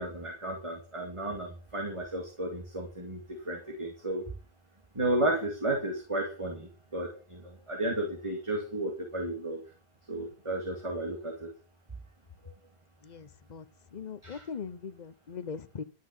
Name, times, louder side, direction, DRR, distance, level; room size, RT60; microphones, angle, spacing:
voice 1, 0.0-3.2 3.5-4.2 5.0-9.6 10.1-11.5 14.2-14.4, right 1 dB, 30° right, 2.3 m, -33 dB
voice 2, 13.0-13.7 13.9-15.8, left 6 dB, 45° left, 0.9 m, -40 dB
12.0 x 6.3 x 7.3 m
omnidirectional pair, 1.1 m